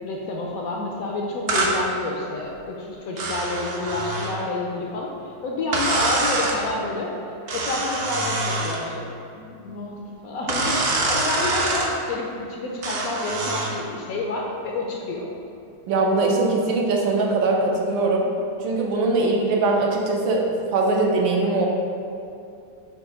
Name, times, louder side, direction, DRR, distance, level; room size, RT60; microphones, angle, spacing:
voice 1, 0.0-7.1 7.5-9.0 9.3-15.3, left 2 dB, 70° left, -1 dB, 0.8 m, -29 dB
sound 1, 1.5-1.8 3.2-4.4 5.7-6.6 7.5-8.8 10.5-11.9 12.8-13.8, right 2 dB, 70° right, 0.6 m, -25 dB
voice 2, 15.9-18.3 18.6-21.7, right 3 dB, 90° right, -1 dB, 1.5 m, -21 dB
7.4 x 2.6 x 5.0 m, 2.6 s
omnidirectional pair, 2.1 m